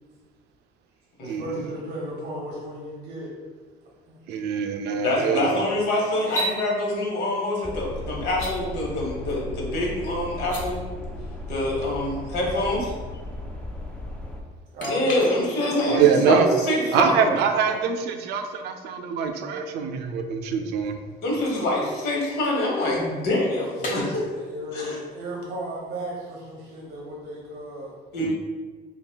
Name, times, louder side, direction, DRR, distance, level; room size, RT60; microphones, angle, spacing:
voice 1, 1.2-3.4 4.1-4.2 14.7-17.8 23.5-27.9, right 2 dB, 60° right, -3 dB, 0.7 m, -34 dB
voice 2, 4.3-5.7 15.9-16.5 16.9-21.0 28.2-28.4, right 7 dB, 85° right, 5 dB, 0.4 m, -24 dB
voice 3, 5.0-10.8 11.5-12.9 14.9-17.3 21.2-24.2 24.7-25.0 28.1-28.3, left 1 dB, 80° left, -2 dB, 1.1 m, -25 dB
sound 1, 6.2-6.5 8.3-8.5 10.3-10.6 14.8-15.8 19.0-19.1 21.0-23.2 23.8-24.0, right 1 dB, 50° left, 1.0 m, -34 dB
sound 2, 7.6-14.4, left 1 dB, 5° left, 0.3 m, -35 dB
5.6 x 2.3 x 2.3 m, 1.4 s
cardioid pair, 140°, 17 cm